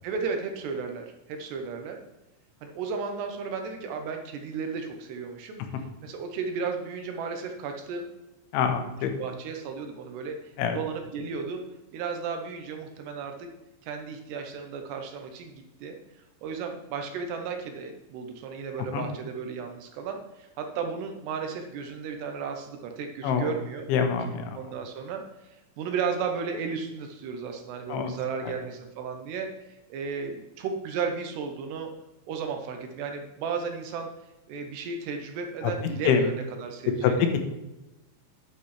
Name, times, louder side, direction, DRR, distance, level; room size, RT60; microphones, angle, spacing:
voice 1, 0.0-2.0 2.6-5.6 6.0-8.1 9.0-11.6 11.9-13.5 13.8-16.0 16.4-23.9 24.5-25.5 25.8-29.5 29.9-31.9 32.3-34.1 34.5-37.3, right 5 dB, 75° right, 4 dB, 2.8 m, -34 dB
voice 2, 8.5-9.1 10.6-10.8 18.9-19.0 23.2-23.5 23.9-24.5 27.9-28.1 36.1-36.2 37.0-37.1, left 7 dB, 90° left, 6 dB, 3.4 m, -25 dB
9.9 x 8.3 x 3.3 m, 0.99 s
omnidirectional pair, 5.3 m